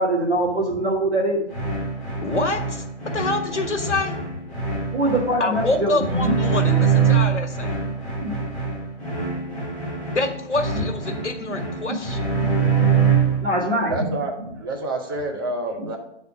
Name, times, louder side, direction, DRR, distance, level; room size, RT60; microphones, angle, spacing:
voice 1, 0.0-1.4 4.9-6.4 8.2-8.4 11.1-12.0 13.4-14.1 14.4-14.5 15.8-15.9, right 1 dB, 65° right, -9 dB, 2.3 m, -24 dB
sound 1, 1.5-13.5, right 6 dB, 5° left, 1.3 m, -24 dB
voice 2, 2.2-2.8 3.1-4.2 5.4-7.8 10.1-12.2, left 2 dB, 75° left, 6 dB, 1.3 m, -26 dB
voice 3, 13.5-16.0, right 2 dB, 20° right, 2 dB, 0.7 m, -29 dB
8.0 x 4.2 x 5.0 m, 0.76 s
figure-of-eight pair, 145°, 35 cm